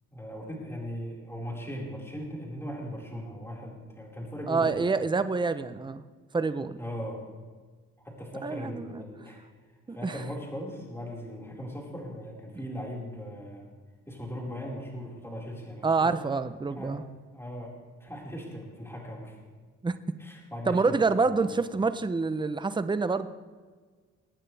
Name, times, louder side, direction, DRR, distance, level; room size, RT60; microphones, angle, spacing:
voice 1, 0.1-4.8 6.8-7.3 8.0-9.4 9.9-13.7 14.1-16.2 16.7-17.0 17.3-17.7 18.0-19.4 20.2-21.0 21.3-21.6, equal, 10° left, -3 dB, 4.8 m, -39 dB
voice 2, 4.5-6.0 6.3-6.8 8.4-9.0 9.9-10.2 15.8-17.0 19.8-20.0 20.7-23.3, right 4 dB, 15° right, 12 dB, 0.7 m, -27 dB
24.5 x 9.2 x 3.4 m, 1.5 s
cardioid pair, 90°, 30 cm